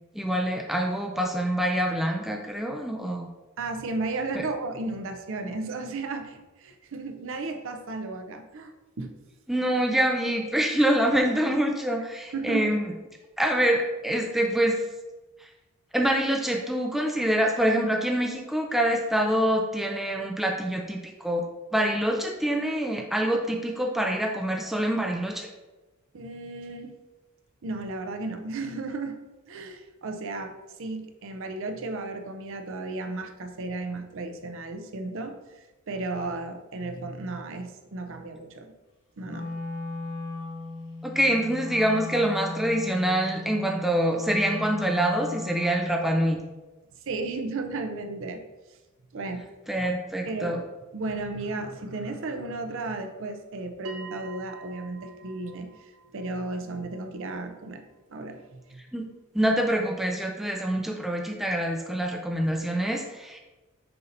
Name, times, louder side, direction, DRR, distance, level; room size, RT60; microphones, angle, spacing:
voice 1, 0.1-3.3 4.4-4.5 9.5-12.9 13.4-14.8 15.9-21.4 21.7-25.5 41.0-46.4 49.7-50.6 58.9-59.0 59.3-63.4, right 1 dB, ahead, 2 dB, 0.4 m, -25 dB
voice 2, 3.6-9.1 12.3-12.7 26.1-26.9 27.6-29.2 29.5-30.5 30.8-38.7 39.2-39.5 47.1-48.4 49.1-49.4 49.8-49.9 50.2-50.6 50.9-58.8, right 3 dB, 60° right, 5 dB, 0.6 m, -34 dB
Wind instrument woodwind instrument, 39.2-45.9, left 2 dB, 65° left, 1.1 m, -36 dB
Bell, 53.8-58.9, right 3 dB, 90° right, 0.8 m, -47 dB
6.8 x 2.8 x 5.2 m, 1.1 s
head